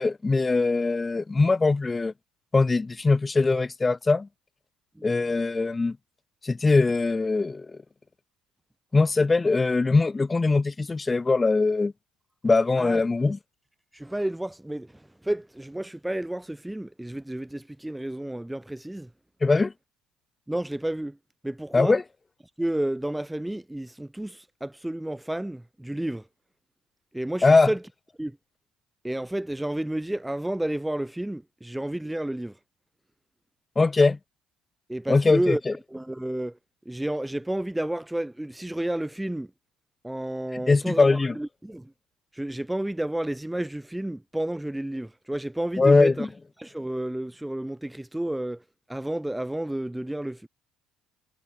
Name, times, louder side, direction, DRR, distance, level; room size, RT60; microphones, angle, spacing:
voice 1, 0.0-2.1 2.5-4.3 5.0-6.0 6.4-7.7 8.9-11.9 12.4-13.4 19.4-19.7 21.7-22.0 27.4-27.7 33.8-34.2 35.1-35.7 40.7-41.4 45.8-46.3, left 3 dB, 25° left, 6.4 m, -21 dB
voice 2, 12.8-13.3 13.9-19.1 20.5-21.2 21.4-22.0 22.6-26.3 27.1-27.8 28.2-28.4 29.0-32.6 34.9-35.6 35.9-36.6 36.9-39.5 40.0-41.9 42.3-46.3 46.6-48.6 48.9-50.5, right 1 dB, 5° right, 3.7 m, -31 dB
hypercardioid pair, 60°, 0 cm